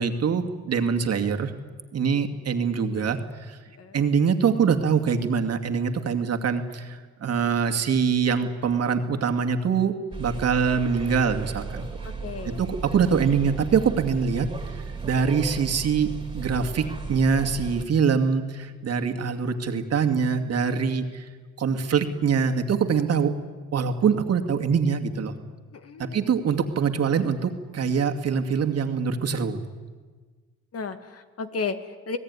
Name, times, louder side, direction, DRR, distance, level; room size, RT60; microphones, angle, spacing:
voice 1, 0.0-1.5 1.9-3.2 3.5-3.6 3.9-11.9 12.4-16.1 16.3-21.3 21.6-23.3 23.7-25.3 26.0-29.6, right 6 dB, 55° right, 5 dB, 2.4 m, -24 dB
voice 2, 2.9-3.2 3.8-4.0 12.0-12.6 25.7-26.3 30.7-32.2, left 5 dB, 50° left, 9 dB, 2.1 m, -34 dB
sound 1, 10.1-17.8, right 4 dB, 15° right, 3.4 m, -35 dB
27.0 x 18.5 x 9.8 m, 1.4 s
cardioid pair, 90°, 30 cm